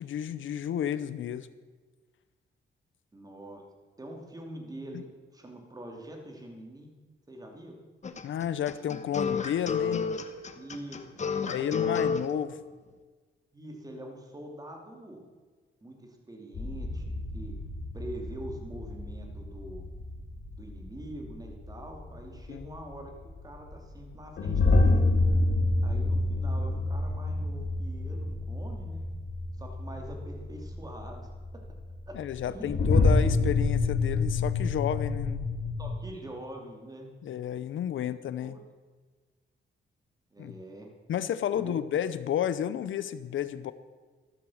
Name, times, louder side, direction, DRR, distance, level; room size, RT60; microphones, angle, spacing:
voice 1, 0.0-1.5 4.9-5.0 8.2-10.0 11.5-12.6 22.5-22.7 32.1-35.5 37.2-38.6 40.4-40.5 41.1-43.7, left 9 dB, 75° left, 14 dB, 0.7 m, -31 dB
voice 2, 3.1-3.6 4.0-5.1 5.3-6.9 7.3-7.8 10.5-11.1 11.4-12.3 13.5-15.2 15.8-17.6 17.9-19.8 20.6-23.1 23.4-25.0 25.8-29.1 29.6-31.6 32.1-32.2 32.4-32.8 35.8-37.1 38.0-38.1 38.4-38.6 40.3-40.9 41.5-41.8, right 1 dB, 20° right, 2 dB, 2.8 m, -44 dB
sound 1, 8.0-12.3, left 6 dB, 35° left, 1.1 m, -30 dB
sound 2, 16.5-35.9, left 2 dB, 60° left, 2.4 m, -28 dB
14.0 x 13.0 x 6.4 m, 1.4 s
wide cardioid pair, 130°, 20 cm